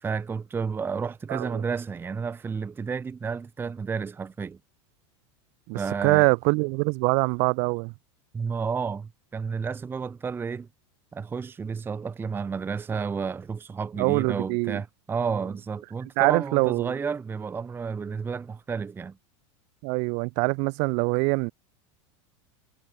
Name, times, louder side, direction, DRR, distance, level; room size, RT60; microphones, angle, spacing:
voice 1, 0.0-4.6 5.8-6.3 8.3-10.7 11.1-19.2, right 5 dB, 15° right, 0.8 m, -31 dB
voice 2, 1.3-1.6 5.7-7.9 14.0-14.8 15.2-15.3 16.2-16.9 19.8-21.5, right 34 dB, 55° right, 2.3 m, -24 dB
supercardioid pair, 135°, 15 cm